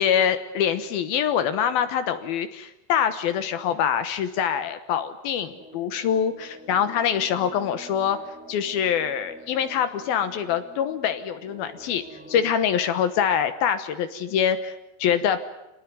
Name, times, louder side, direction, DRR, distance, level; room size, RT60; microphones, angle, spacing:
voice 1, 0.0-8.2 8.5-15.4, left 8 dB, 70° left, 11 dB, 2.5 m, -24 dB
sound 1, 5.6-12.6, equal, 5° right, 0.6 m, -47 dB
26.5 x 19.0 x 9.4 m, 0.91 s
omnidirectional pair, 5.4 m